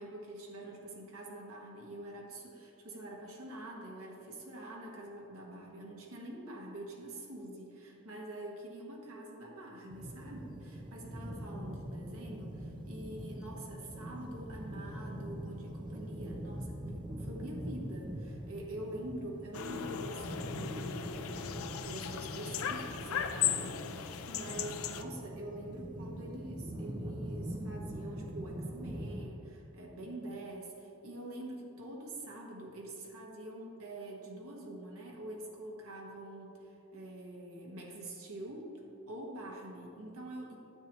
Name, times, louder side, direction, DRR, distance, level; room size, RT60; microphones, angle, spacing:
voice 1, 0.0-38.7 39.1-40.6, right 1 dB, 80° right, -1 dB, 1.4 m, -45 dB
sound 1, 9.9-29.2, right 1 dB, 20° right, 0.6 m, -43 dB
sound 2, 19.5-25.0, left 9 dB, 70° left, 0.4 m, -37 dB
9.5 x 7.7 x 3.0 m, 2.9 s
head